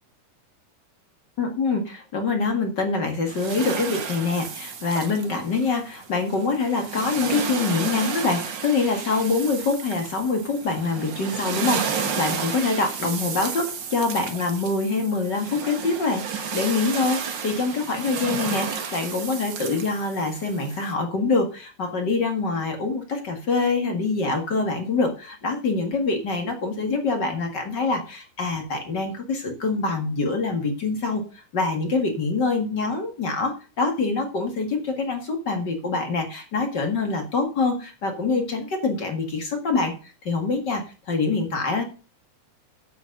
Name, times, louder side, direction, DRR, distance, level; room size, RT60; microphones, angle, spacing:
voice 1, 1.4-31.2 31.5-39.9 40.2-40.8 41.1-41.8, left 3 dB, 40° left, 5 dB, 2.0 m, -25 dB
sound 1, 3.3-20.9, right 6 dB, 50° right, 1.6 m, -32 dB
8.5 x 7.4 x 6.5 m, 0.35 s
omnidirectional pair, 3.5 m